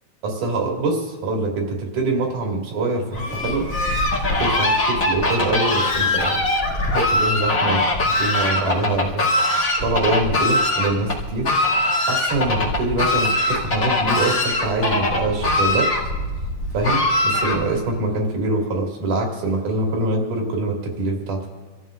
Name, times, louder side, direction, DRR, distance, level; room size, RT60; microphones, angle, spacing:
voice 1, 0.2-3.7 4.4-6.4 6.9-7.9 8.2-9.2 9.8-11.5 12.1-15.9 16.7-21.5, right 2 dB, 55° right, 0 dB, 3.5 m, -24 dB
Fowl, 3.1-17.9, left 1 dB, 30° left, 1.7 m, -22 dB
27.5 x 14.5 x 2.5 m, 1.4 s
omnidirectional pair, 4.7 m